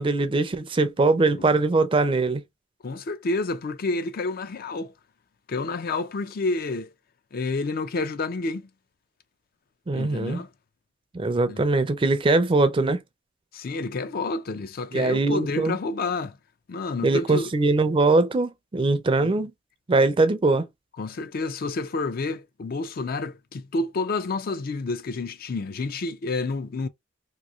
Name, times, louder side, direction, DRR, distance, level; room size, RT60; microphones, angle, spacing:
voice 1, 0.0-2.4 9.9-10.4 11.1-13.0 14.9-15.7 17.0-19.5 19.9-20.7, right 3 dB, 25° right, 0.4 m, -22 dB
voice 2, 2.8-4.9 5.5-6.9 7.3-8.7 9.9-10.5 11.5-11.6 13.5-16.4 16.7-17.5 19.2-19.3 21.0-26.9, left 3 dB, 50° left, 0.4 m, -29 dB
3.0 x 2.6 x 2.4 m
head